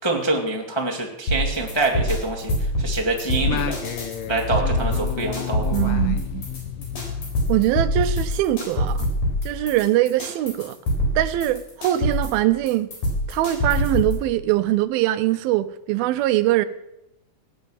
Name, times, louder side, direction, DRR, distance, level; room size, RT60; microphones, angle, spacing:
voice 1, 0.0-2.5 2.8-3.8 4.3-5.9, right 2 dB, 10° left, 1.2 m, -25 dB
sound 1, 1.3-14.3, left 1 dB, 55° left, 5.9 m, -25 dB
Singing, 3.4-8.2, left 10 dB, 70° left, 2.2 m, -32 dB
voice 2, 5.7-6.4 7.5-9.1 9.4-10.8 11.2-12.9 13.3-16.7, right 14 dB, 85° right, 2.5 m, -22 dB
17.5 x 9.5 x 7.2 m
omnidirectional pair, 4.3 m